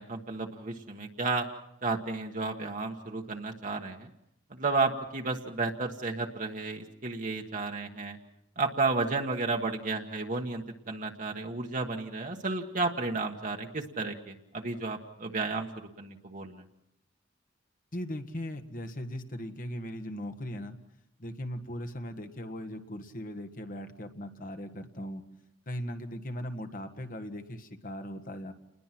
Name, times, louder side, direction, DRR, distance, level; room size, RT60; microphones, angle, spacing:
voice 1, 0.0-1.5 1.8-4.1 4.6-8.2 8.6-16.6, right 3 dB, 45° right, 2 dB, 1.4 m, -32 dB
voice 2, 17.9-20.8 21.2-25.2 25.7-28.5, equal, 45° left, 7 dB, 1.7 m, -38 dB
29.0 x 21.0 x 6.0 m, 0.82 s
head